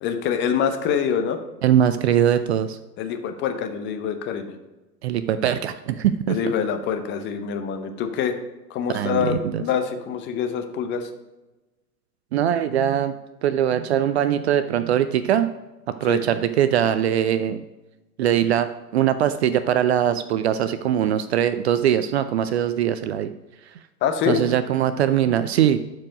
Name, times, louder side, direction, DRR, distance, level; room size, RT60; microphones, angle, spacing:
voice 1, 0.0-1.4 3.0-4.6 6.3-8.4 8.7-11.1 16.0-16.2 24.0-24.4, left 7 dB, 25° left, 7 dB, 0.8 m, -25 dB
voice 2, 1.6-2.8 5.0-6.4 8.9-9.6 12.3-13.1 13.4-15.5 16.0-17.6 18.2-23.3 24.3-25.8, right 10 dB, 45° right, 12 dB, 0.5 m, -21 dB
11.5 x 4.8 x 5.2 m, 1.1 s
figure-of-eight pair, 100°, 49 cm